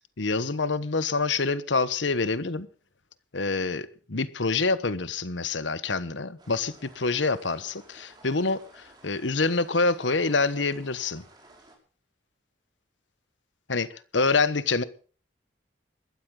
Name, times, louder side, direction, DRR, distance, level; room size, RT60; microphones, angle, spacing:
voice 1, 0.2-2.7 3.3-11.2 13.7-13.9 14.1-14.8, left 4 dB, 85° left, 1.2 m, -26 dB
sound 1, 6.4-11.7, right 2 dB, 25° right, 5.2 m, -54 dB
21.5 x 13.0 x 3.9 m
head